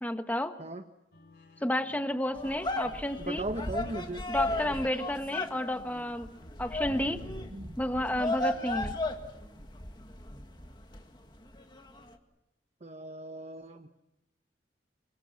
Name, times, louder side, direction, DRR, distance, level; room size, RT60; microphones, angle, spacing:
voice 1, 0.0-0.6 1.6-3.4 4.3-6.3 6.6-7.2 7.8-8.9, left 1 dB, 10° left, 8 dB, 1.3 m, -31 dB
sound 1, 1.1-6.1 6.6-7.5, left 2 dB, 65° left, 3.3 m, -53 dB
sound 2, 2.3-11.0 11.5-12.1, left 2 dB, 25° left, 1.8 m, -35 dB
voice 2, 3.3-4.3 7.5-7.7 12.8-13.9, right 2 dB, 40° right, 6 dB, 1.0 m, -37 dB
27.0 x 24.5 x 7.1 m, 0.92 s
head